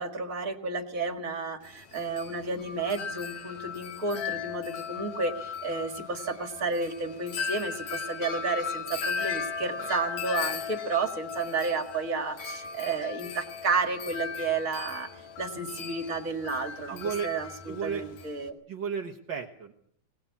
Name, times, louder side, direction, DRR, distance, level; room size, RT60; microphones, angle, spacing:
voice 1, 0.0-15.1 15.4-18.6, right 4 dB, 30° right, 6 dB, 1.8 m, -32 dB
Wind chime, 1.6-18.5, left 6 dB, 60° left, 3.0 m, -37 dB
voice 2, 16.9-17.3 17.7-18.0 18.7-19.7, right 6 dB, 55° right, 2 dB, 1.3 m, -34 dB
22.0 x 19.0 x 8.4 m, 0.69 s
omnidirectional pair, 3.8 m